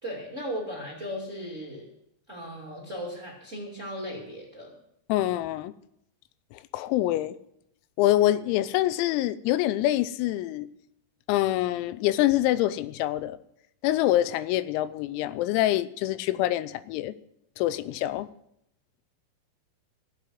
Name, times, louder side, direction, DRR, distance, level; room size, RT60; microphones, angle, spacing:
voice 1, 0.0-1.9 2.3-4.8, equal, 25° right, 1.5 m, -36 dB
voice 2, 5.1-5.7 6.5-7.4 8.0-10.7 11.3-13.4 13.8-17.2 17.6-18.3, left 14 dB, 90° left, 3.4 m, -25 dB
15.0 x 8.8 x 7.7 m
omnidirectional pair, 6.0 m